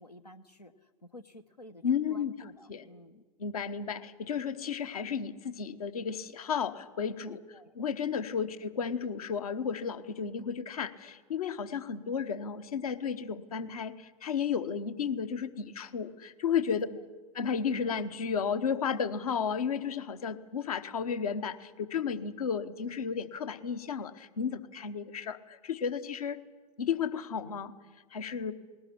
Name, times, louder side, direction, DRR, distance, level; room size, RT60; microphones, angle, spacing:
voice 1, 0.0-1.8 2.1-3.2 7.3-7.7 16.7-17.0, left 1 dB, 90° left, 7 dB, 1.1 m, -51 dB
voice 2, 1.8-2.3 2.7-2.9 3.4-7.4 7.7-16.9 17.3-26.4 26.8-27.7 28.1-28.5, left 7 dB, 70° left, 11 dB, 1.2 m, -33 dB
20.0 x 19.5 x 9.9 m, 1.3 s
figure-of-eight pair, 90°, 20 cm